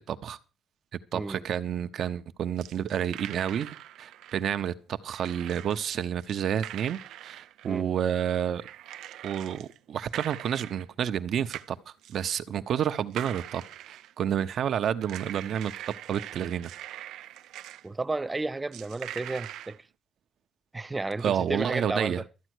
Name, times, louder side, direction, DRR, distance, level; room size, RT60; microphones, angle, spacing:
voice 1, 0.1-0.4 1.1-3.7 4.0-8.7 9.2-13.6 13.9-15.7 16.1-16.7 21.2-22.2, right 9 dB, 65° right, 1.0 m, -30 dB
voice 2, 1.1-1.5 7.6-7.9 17.8-19.8 20.7-22.2, right 3 dB, 20° right, 0.6 m, -32 dB
sound 1, 2.6-4.4 5.1-5.8 6.2-7.9 8.6-9.8 10.1-10.9 11.5-11.7 12.0-12.2 13.1-14.2 15.0-17.9 18.7-19.8, right 13 dB, 85° right, 0.6 m, -42 dB
13.5 x 8.9 x 6.4 m
cardioid pair, 90°, 0 cm